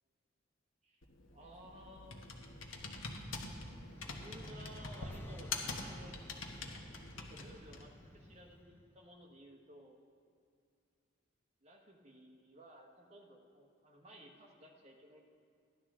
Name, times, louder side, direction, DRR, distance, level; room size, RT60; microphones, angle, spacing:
Computer keyboard, 1.0-8.0, left 3 dB, 75° left, 1.2 m, -45 dB
voice 1, 1.3-2.2 3.6-6.2 7.2-10.1 11.6-15.2, equal, 30° right, 1 dB, 1.3 m, -56 dB
sound 1, 3.2-9.1, equal, 10° left, 0.6 m, -55 dB
14.5 x 11.0 x 3.7 m, 2.4 s
head